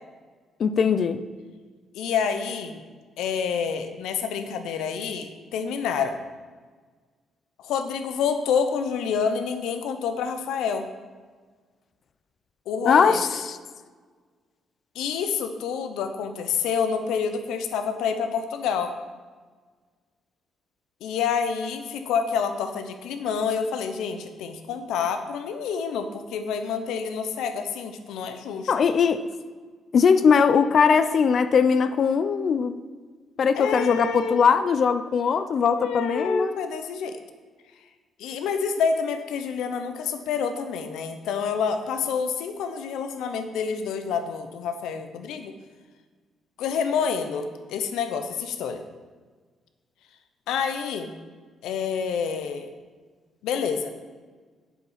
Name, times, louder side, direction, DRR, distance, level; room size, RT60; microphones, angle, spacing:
voice 1, 0.6-1.2 12.8-13.6 28.7-29.2 29.9-32.8 33.4-36.5, left 6 dB, 55° left, 11 dB, 0.5 m, -20 dB
voice 2, 1.9-2.8 3.2-6.2 7.6-10.9 12.7-13.2 14.9-19.0 21.0-28.7 33.6-34.4 35.7-37.2 38.2-45.5 46.6-48.8 50.5-51.2 51.6-52.7 53.4-53.9, left 6 dB, 85° left, 8 dB, 0.9 m, -28 dB
8.2 x 7.4 x 5.7 m, 1.5 s
cardioid pair, 90°, 0 cm